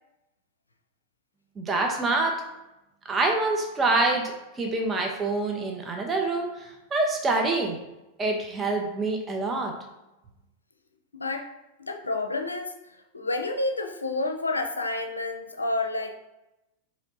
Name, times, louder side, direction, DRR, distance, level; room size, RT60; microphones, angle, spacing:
voice 1, 1.6-2.3 3.1-7.8 8.2-9.7, right 2 dB, 20° right, 1 dB, 0.8 m, -26 dB
voice 2, 11.1-11.5 11.8-12.7 13.1-16.2, left 2 dB, 80° left, 5 dB, 0.5 m, -29 dB
4.4 x 3.1 x 3.9 m, 0.96 s
figure-of-eight pair, 90°, 0 cm